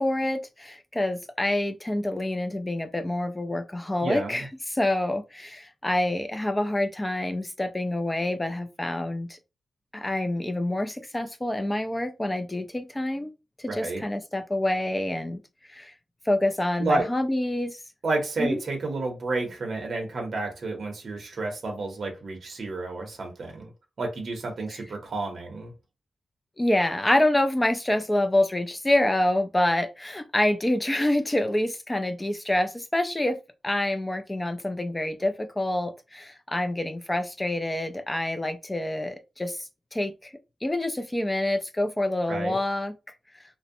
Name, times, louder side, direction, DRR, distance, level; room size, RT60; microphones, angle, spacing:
voice 1, 0.0-9.4 9.9-13.3 13.7-15.4 15.7-15.9 16.3-17.8 18.4-18.6 26.6-33.4 33.6-40.3 40.6-42.9, left 1 dB, 15° left, 0.3 m, -27 dB
voice 2, 4.0-4.5 13.7-14.0 16.8-17.1 18.0-23.7 24.0-25.7 42.3-42.6, right 2 dB, 55° right, 0.6 m, -30 dB
2.5 x 2.0 x 2.5 m
wide cardioid pair, 125°, 0 cm